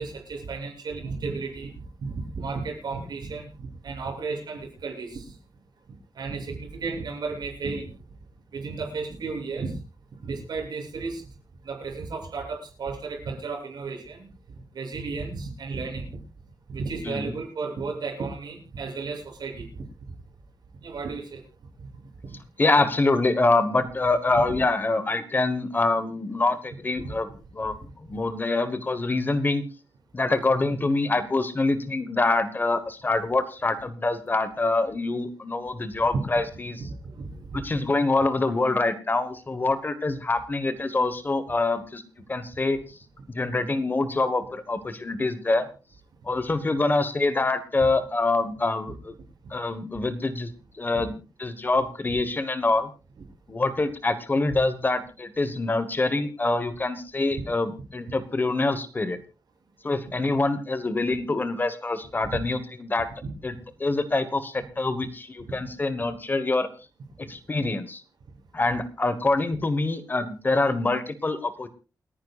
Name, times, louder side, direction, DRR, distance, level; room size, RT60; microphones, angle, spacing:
voice 1, 0.0-5.3 6.1-7.9 8.5-9.8 10.2-11.2 11.6-14.3 14.7-16.1 16.7-19.8 20.8-21.4 21.8-21.9 22.2-22.4 24.3-24.6 27.0-27.1 27.6-27.7 36.1-36.2 36.8-37.8 50.9-51.0 53.2-53.3 62.3-62.4 63.2-63.3, right 4 dB, 70° right, -1 dB, 7.7 m, -34 dB
voice 2, 22.6-27.8 28.1-29.7 30.1-36.8 37.5-42.0 42.3-43.0 43.3-45.7 46.2-49.1 49.5-52.9 53.5-59.2 59.8-63.1 63.4-63.5 63.8-66.7 67.2-68.0 68.5-71.7, left 2 dB, 25° left, 12 dB, 1.2 m, -25 dB
29.0 x 10.0 x 2.4 m, 0.31 s
wide cardioid pair, 180°, 7 cm